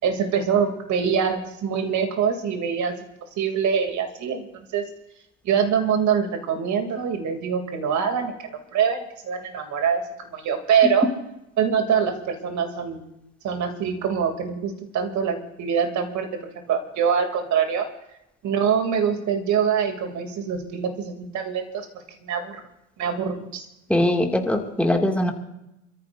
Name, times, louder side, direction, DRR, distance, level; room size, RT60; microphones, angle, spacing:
voice 1, 0.0-4.8 5.4-11.1 11.6-13.0 13.4-17.9 18.4-22.6 23.0-23.7, right 7 dB, 45° right, 6 dB, 2.9 m, -24 dB
voice 2, 23.9-25.3, left 1 dB, 5° left, 2 dB, 2.3 m, -21 dB
28.5 x 14.0 x 2.6 m, 0.86 s
hypercardioid pair, 80°, 39 cm